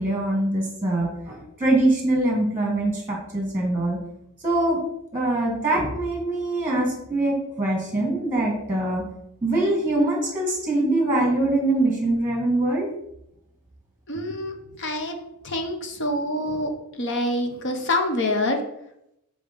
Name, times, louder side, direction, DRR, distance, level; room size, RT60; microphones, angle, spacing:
voice 1, 0.0-4.0 4.4-4.8 5.1-9.0 9.4-12.9, right 2 dB, 10° right, -1 dB, 1.7 m, -23 dB
voice 2, 14.1-15.2 15.4-18.6, left 1 dB, 55° left, 4 dB, 0.9 m, -26 dB
6.5 x 3.8 x 5.3 m, 0.81 s
head